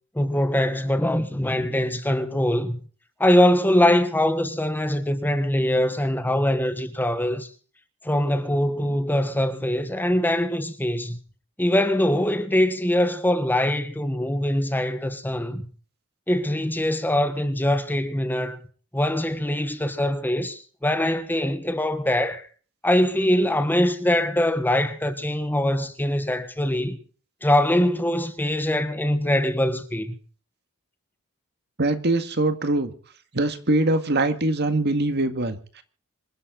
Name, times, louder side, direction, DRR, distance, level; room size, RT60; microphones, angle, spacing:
voice 1, 0.1-2.8 3.2-7.5 8.0-11.2 11.6-15.7 16.3-18.6 18.9-22.5 22.8-27.0 27.4-30.1, left 1 dB, 10° left, 1.4 m, -23 dB
voice 2, 31.8-32.9 33.3-35.8, right 2 dB, 55° right, 1.9 m, -23 dB
26.0 x 11.0 x 3.9 m
head